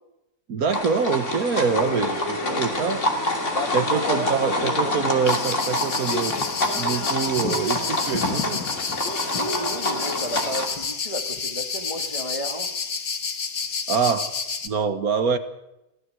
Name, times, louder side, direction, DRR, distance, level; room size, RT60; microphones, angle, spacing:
voice 1, 0.5-3.0 3.7-6.3 6.8-8.6 13.9-14.3 14.6-15.4, right 6 dB, 70° right, 9 dB, 1.8 m, -25 dB
sound 1, 0.7-10.7, left 2 dB, 50° left, 3.1 m, -27 dB
voice 2, 1.7-2.8 3.5-5.0 9.3-12.7, equal, 20° left, 4 dB, 1.9 m, -33 dB
sound 2, 5.3-14.7, left 5 dB, 70° left, 2.0 m, -29 dB
23.5 x 16.0 x 7.9 m, 0.91 s
omnidirectional pair, 1.6 m